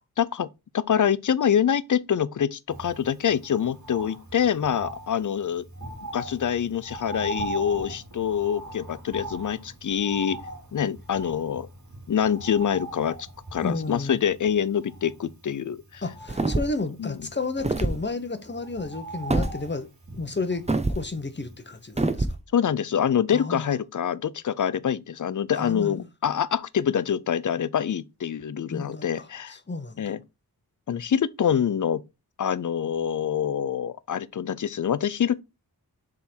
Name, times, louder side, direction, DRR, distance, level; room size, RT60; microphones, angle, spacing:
voice 1, 0.2-0.5 0.7-5.7 6.1-10.4 10.7-11.7 12.1-13.2 13.5-16.0 17.0-17.2 22.5-29.5 30.0-30.2 30.9-32.0 32.4-35.4, left 8 dB, 55° left, 0.5 m, -25 dB
Bird, 2.7-21.8 22.1-22.2, right 2 dB, 50° right, 2.3 m, -41 dB
voice 2, 13.6-14.2 16.0-19.9 20.1-20.6 20.9-22.3 23.3-23.7 25.5-26.1 28.7-30.1, left 3 dB, 30° left, 1.0 m, -32 dB
sound 1, 16.3-16.8 17.6-18.0 19.3-19.5 20.7-21.0 22.0-22.4, right 2 dB, 15° right, 0.8 m, -24 dB
7.2 x 3.8 x 4.4 m
wide cardioid pair, 90°, 38 cm